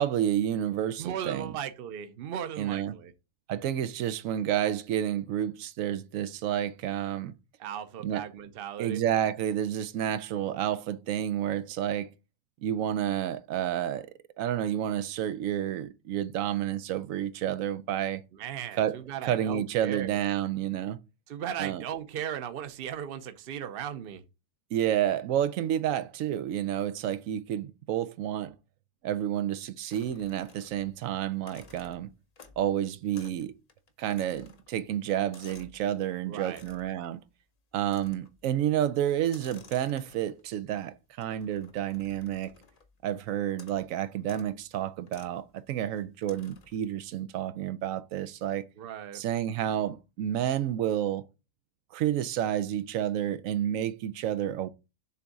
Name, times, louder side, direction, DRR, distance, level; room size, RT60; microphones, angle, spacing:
voice 1, 0.0-1.5 2.6-2.9 3.5-7.3 8.0-8.2 8.8-12.1 12.6-14.1 14.4-18.2 18.8-19.0 19.2-21.0 21.6-21.8 24.7-28.5 29.0-32.1 32.6-33.5 34.0-37.2 37.7-42.5 43.0-48.7 49.1-51.2 51.9-54.7, right 11 dB, 90° right, 1.0 m, -30 dB
voice 2, 1.0-3.1 7.6-9.0 18.3-20.2 21.3-24.2 36.3-36.6 48.8-49.2, right 9 dB, 55° right, 0.8 m, -37 dB
sound 1, 29.9-31.0 31.3-32.7 33.1-33.4 33.7-35.8 36.5-37.0 37.9-38.4 39.2-40.5 41.2-42.9 43.5-43.9 44.2-44.5 45.1-45.4 46.2-46.8, left 4 dB, 40° left, 0.7 m, -54 dB
6.9 x 3.6 x 4.1 m
omnidirectional pair, 1.3 m